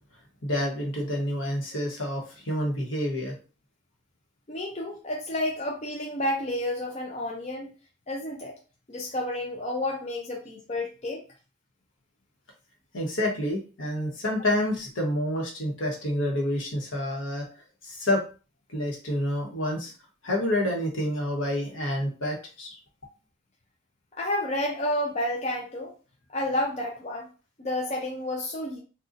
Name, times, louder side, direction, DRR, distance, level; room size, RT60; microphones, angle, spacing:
voice 1, 0.4-3.4 12.9-17.5 17.8-18.2 18.7-19.9 20.2-22.7, left 1 dB, 75° left, 0 dB, 1.1 m, -28 dB
voice 2, 4.5-7.7 8.1-8.6 8.9-11.2 24.2-25.9 26.3-27.3 27.6-28.8, left 1 dB, 30° left, -1 dB, 0.5 m, -30 dB
3.9 x 2.3 x 2.5 m, 0.35 s
head